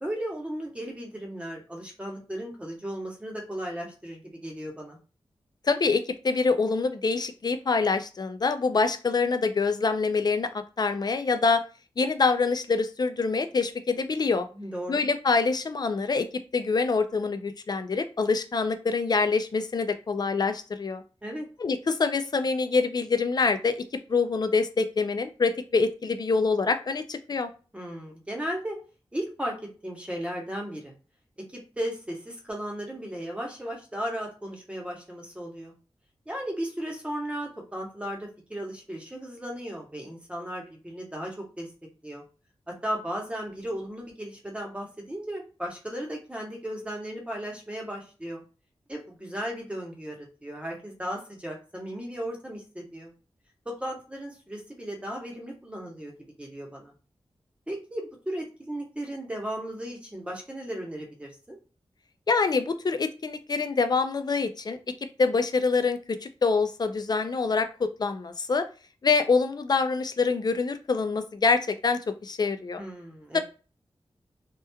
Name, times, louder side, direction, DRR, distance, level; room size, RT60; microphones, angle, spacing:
voice 1, 0.0-5.0 14.5-15.1 21.2-21.5 27.7-28.8 29.1-30.9 31.5-35.7 36.3-41.7 42.0-42.2 42.7-48.4 48.9-53.1 53.7-56.1 56.4-56.9 57.7-61.6 72.8-73.4, equal, 10° right, 0 dB, 0.8 m, -35 dB
voice 2, 5.7-10.5 10.8-11.6 12.0-14.5 14.9-16.3 16.5-21.0 21.6-23.8 24.1-27.5 62.3-64.8 65.2-68.7 69.0-72.8 73.3-73.4, left 4 dB, 40° left, 9 dB, 0.3 m, -25 dB
2.9 x 2.2 x 2.2 m, 0.34 s
wide cardioid pair, 95°, 10 cm